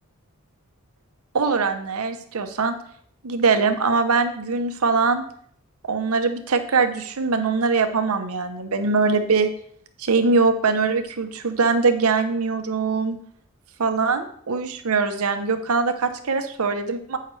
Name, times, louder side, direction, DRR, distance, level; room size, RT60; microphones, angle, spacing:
voice 1, 1.3-2.8 3.2-5.2 5.8-9.5 10.0-13.2 13.8-17.2, right 4 dB, 80° right, 7 dB, 0.8 m, -22 dB
8.9 x 5.6 x 3.2 m, 0.62 s
head